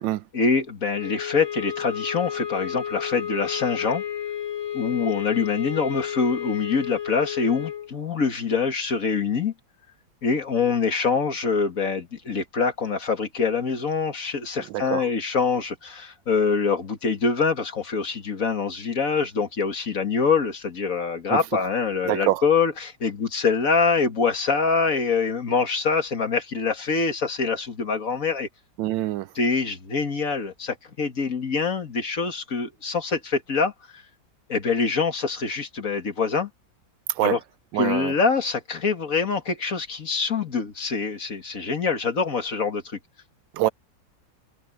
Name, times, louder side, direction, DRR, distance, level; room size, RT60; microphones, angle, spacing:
voice 1, 0.3-4.0 4.7-9.5 10.2-28.5 29.4-34.0 34.5-36.5 37.2-37.4 37.8-43.0, left 5 dB, 45° left, 2.2 m, -25 dB
sound 1, 0.9-7.9, left 9 dB, 20° left, 0.6 m, -32 dB
voice 2, 14.7-15.1 21.3-21.4 22.0-22.4 28.8-29.3 37.2-37.4 37.7-38.1 43.5-43.7, right 14 dB, 90° right, 1.4 m, -25 dB
omnidirectional pair, 2.0 m